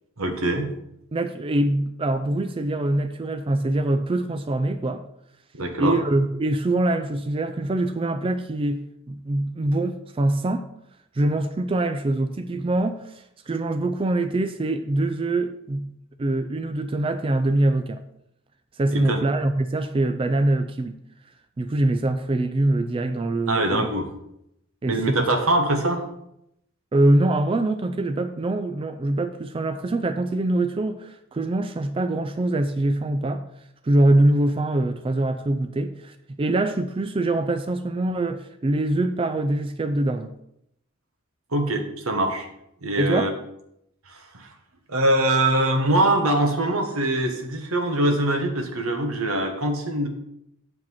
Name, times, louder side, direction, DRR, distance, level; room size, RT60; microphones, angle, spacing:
voice 1, 0.2-0.7 5.5-6.0 18.9-19.2 23.5-24.1 24.9-26.0 41.5-42.5 42.8-43.3 44.1-44.5 44.9-50.1, right 1 dB, 85° right, 5 dB, 1.4 m, -23 dB
voice 2, 1.1-5.0 5.8-10.7 11.1-15.8 16.2-18.0 18.8-20.9 21.6-23.9 24.8-25.3 26.9-33.4 33.8-40.3 43.0-43.3, right 2 dB, 25° right, 9 dB, 0.4 m, -24 dB
7.8 x 4.9 x 5.6 m, 0.78 s
head